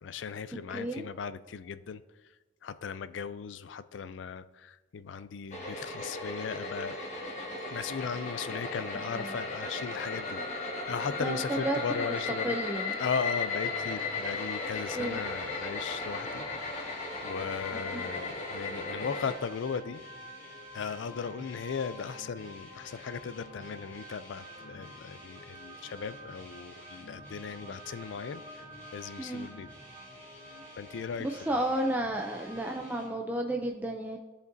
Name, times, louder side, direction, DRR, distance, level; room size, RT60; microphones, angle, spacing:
voice 1, 0.0-2.0 2.6-7.0 7.7-12.6 13.0-16.9 17.2-20.0 20.7-28.4 28.9-29.7 30.8-31.6, left 6 dB, 85° left, 14 dB, 0.4 m, -37 dB
voice 2, 0.7-1.0 9.1-9.3 11.2-12.2 12.4-13.0 15.0-15.2 17.7-18.0 29.2-29.5 31.2-34.2, right 1 dB, 10° right, 1 dB, 0.4 m, -32 dB
sound 1, 5.5-19.3, left 3 dB, 40° left, 1.5 m, -36 dB
sound 2, 13.5-33.1, left 1 dB, 10° left, 2.7 m, -52 dB
sound 3, 14.5-32.7, equal, 35° right, 1.5 m, -50 dB
15.5 x 5.2 x 2.6 m, 1.2 s
head